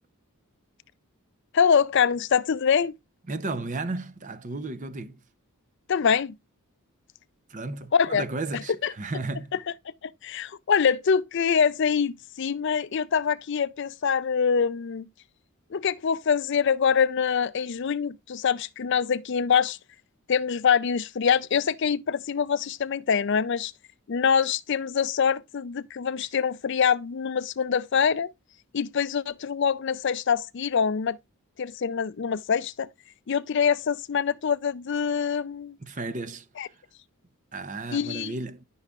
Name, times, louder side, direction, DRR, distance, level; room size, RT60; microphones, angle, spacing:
voice 1, 1.5-2.9 5.9-6.3 7.9-8.2 8.8-8.9 10.0-15.1 15.7-19.8 20.3-23.7 24.1-28.3 28.7-31.2 31.6-32.9 33.3-35.8 36.6-36.7 37.9-38.3, left 6 dB, 55° left, 0.4 m, -24 dB
voice 2, 3.3-5.2 7.5-9.5 35.8-36.7 37.5-38.6, right 3 dB, 35° right, 0.6 m, -34 dB
13.0 x 5.6 x 2.4 m
head